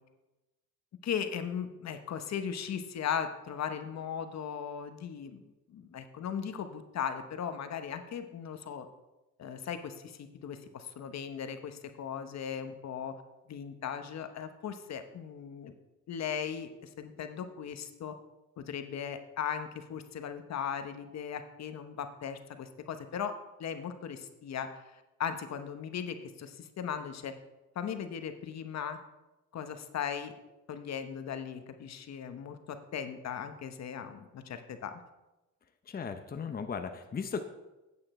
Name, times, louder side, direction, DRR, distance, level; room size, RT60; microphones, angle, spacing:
voice 1, 1.0-5.4 5.7-8.9 9.4-13.1 13.5-15.7 16.1-18.2 18.6-27.3 27.7-29.0 29.5-30.3 30.7-35.0, left 8 dB, 60° left, 8 dB, 1.1 m, -38 dB
voice 2, 35.9-37.4, left 6 dB, 30° left, 6 dB, 0.8 m, -36 dB
9.1 x 8.6 x 4.3 m, 1.0 s
cardioid pair, 90°, 30 cm